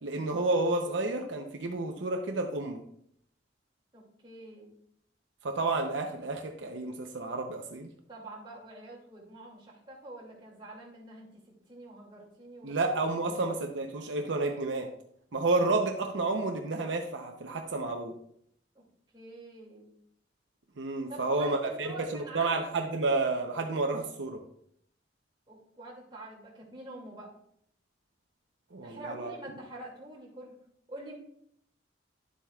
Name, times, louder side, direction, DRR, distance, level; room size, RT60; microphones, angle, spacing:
voice 1, 0.0-2.8 5.4-7.9 12.6-14.9 15.3-18.1 20.8-24.4 28.7-29.3, right 3 dB, 80° right, 4 dB, 0.7 m, -30 dB
voice 2, 3.9-4.7 8.1-11.3 11.7-12.8 13.2-13.5 19.1-19.9 21.1-22.7 25.5-27.3 28.8-30.5 30.9-31.2, right 2 dB, 25° right, -3 dB, 2.3 m, -46 dB
11.0 x 7.5 x 2.4 m, 0.68 s
head